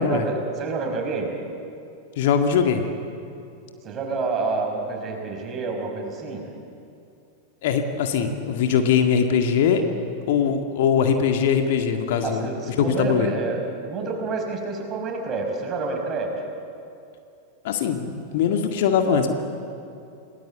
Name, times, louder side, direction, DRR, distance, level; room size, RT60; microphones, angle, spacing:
voice 1, 0.0-1.4 3.8-6.5 12.2-16.4, right 3 dB, 30° right, 2 dB, 5.4 m, -28 dB
voice 2, 2.2-2.9 7.6-9.8 10.3-13.3 17.6-19.3, left 7 dB, 55° left, 5 dB, 2.0 m, -21 dB
28.5 x 19.5 x 8.2 m, 2.6 s
figure-of-eight pair, 90°, 0 cm